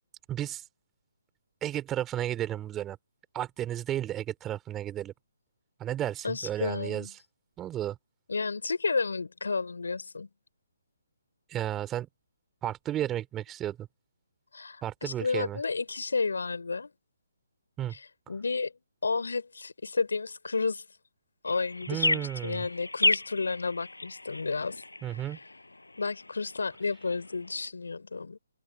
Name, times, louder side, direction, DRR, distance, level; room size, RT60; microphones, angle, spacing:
voice 1, 0.3-0.6 1.6-3.0 3.3-5.1 5.8-7.1 7.6-8.0 11.5-12.1 12.6-13.9 14.8-15.6 17.8-18.0 21.9-22.6 25.0-25.4, right 12 dB, 15° right, 2.8 m, -33 dB
voice 2, 6.2-7.1 8.3-10.3 14.5-16.9 17.9-18.7 19.0-20.8 21.4-24.8 25.1-25.2 26.0-28.4, left 4 dB, 70° left, 4.2 m, -32 dB
sound 1, 21.4-27.7, left 2 dB, 90° left, 5.9 m, -33 dB
figure-of-eight pair, 140°, 0 cm